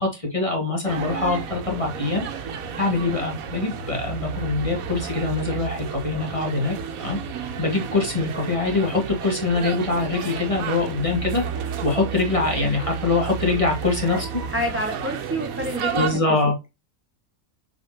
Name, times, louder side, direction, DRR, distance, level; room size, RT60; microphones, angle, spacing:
voice 1, 0.0-14.3 15.9-16.5, left 3 dB, 20° left, 2.3 m, -24 dB
sound 1, 0.9-16.1, right 6 dB, 75° right, 1.3 m, -32 dB
voice 2, 14.5-16.0, equal, 10° right, 0.9 m, -28 dB
6.6 x 5.1 x 2.9 m
omnidirectional pair, 1.5 m